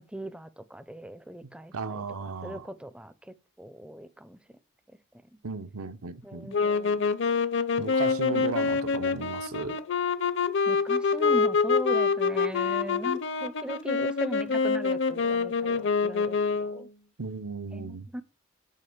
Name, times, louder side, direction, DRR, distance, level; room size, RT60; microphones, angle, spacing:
voice 1, 0.0-2.0 2.4-4.4 6.2-7.0 10.7-16.9 17.7-18.2, equal, 5° right, 0.5 m, -39 dB
voice 2, 1.7-2.7 5.4-6.5 7.8-9.8 17.2-18.1, right 4 dB, 80° right, 0.9 m, -35 dB
sound 1, 6.5-16.9, left 5 dB, 55° left, 0.7 m, -26 dB
9.9 x 5.2 x 7.2 m
head